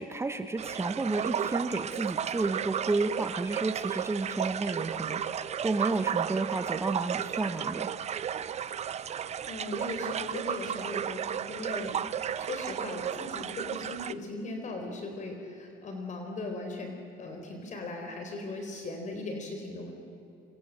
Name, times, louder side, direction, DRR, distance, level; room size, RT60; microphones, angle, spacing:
voice 1, 0.0-7.9, right 3 dB, 15° right, 8 dB, 1.1 m, -31 dB
sound 1, 0.6-14.1, right 8 dB, 35° right, 0.8 m, -33 dB
voice 2, 8.9-12.0 12.4-19.9, left 2 dB, 40° left, 4 dB, 4.2 m, -39 dB
26.5 x 26.5 x 7.6 m, 2.8 s
cardioid pair, 135°, 18 cm